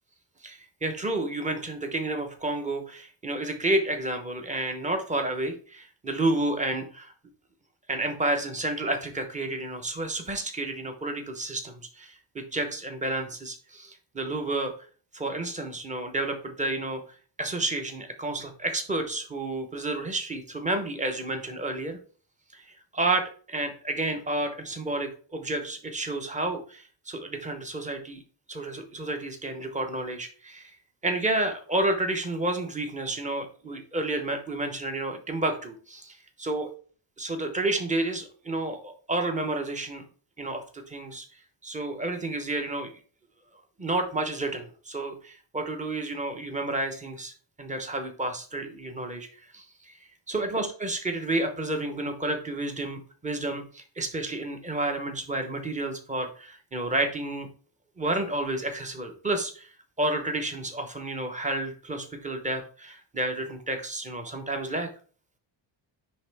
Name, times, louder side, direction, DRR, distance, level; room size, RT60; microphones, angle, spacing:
voice 1, 0.4-7.1 7.9-14.7 15.1-17.0 17.4-22.0 22.5-28.2 28.5-30.7 31.0-36.7 37.2-40.0 40.4-41.3 41.6-42.9 43.8-47.3 47.6-49.9 50.3-57.5 58.0-64.9, right 2 dB, 15° right, 5 dB, 1.0 m, -30 dB
9.9 x 3.4 x 3.5 m, 0.40 s
cardioid pair, 155°, 48 cm